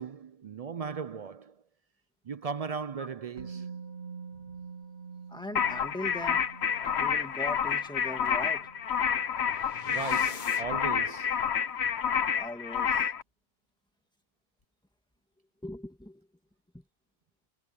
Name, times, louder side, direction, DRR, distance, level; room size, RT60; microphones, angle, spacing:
voice 1, 0.0-1.6 2.2-3.7 9.8-11.4, right 6 dB, 50° right, 0.4 m, -37 dB
Musical instrument, 3.4-11.3 11.5-11.7, right 5 dB, 75° right, 2.8 m, -47 dB
voice 2, 5.3-6.4 7.0-8.7 12.4-13.1 15.6-16.2 16.7-16.8, left 1 dB, 5° left, 2.0 m, -40 dB
sound 1, 5.6-13.2, left 7 dB, 85° left, 1.2 m, -29 dB
sound 2, 8.7-10.9, left 5 dB, 50° left, 1.3 m, -46 dB
omnidirectional pair, 1.1 m